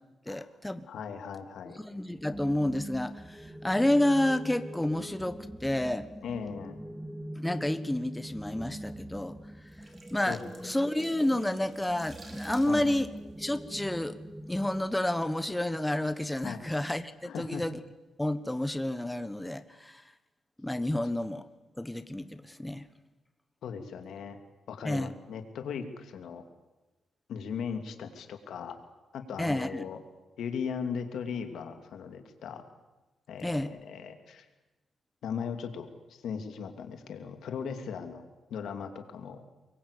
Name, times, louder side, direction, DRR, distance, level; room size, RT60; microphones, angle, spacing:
voice 1, 0.3-0.9 1.8-6.1 7.4-9.3 10.1-13.1 13.4-14.2 14.5-17.8 18.2-20.0 20.6-21.5 21.8-22.9 24.8-25.1 29.4-29.8 33.4-33.7, left 1 dB, 10° left, 12 dB, 1.3 m, -30 dB
voice 2, 0.9-1.8 6.2-6.8 10.3-10.4 12.7-12.9 16.4-16.6 17.2-17.6 23.6-24.4 24.7-26.4 27.3-28.8 29.1-30.0 30.4-32.6 33.3-34.5 35.2-38.2 38.5-39.4, left 6 dB, 80° left, 6 dB, 2.6 m, -38 dB
sound 1, 2.1-14.9, right 1 dB, 5° right, 1.8 m, -43 dB
sound 2, 9.5-14.4 14.7-14.9, right 3 dB, 35° right, 4.6 m, -53 dB
24.0 x 22.5 x 8.5 m, 1.1 s
cardioid pair, 90°, 0 cm